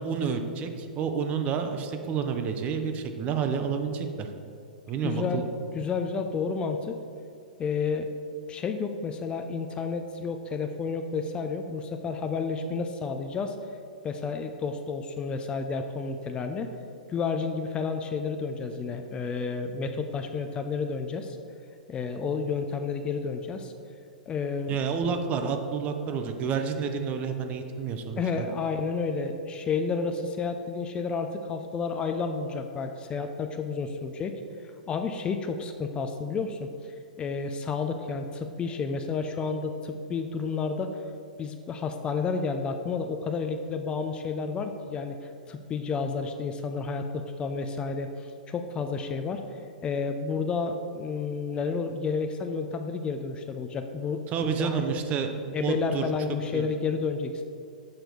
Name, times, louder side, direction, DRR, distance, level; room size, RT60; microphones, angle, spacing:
voice 1, 0.0-4.3 4.9-5.5 24.7-28.5 54.3-56.1 56.5-56.7, right 6 dB, 30° right, 6 dB, 0.6 m, -29 dB
voice 2, 5.0-7.0 7.6-8.1 8.5-13.6 14.0-16.7 17.1-21.4 21.9-23.7 24.3-24.8 28.2-34.4 34.9-41.0 41.4-49.4 49.8-54.8 55.5-57.4, left 5 dB, 20° left, 6 dB, 0.4 m, -31 dB
6.5 x 4.4 x 5.3 m, 2.4 s
hypercardioid pair, 110°, 5 cm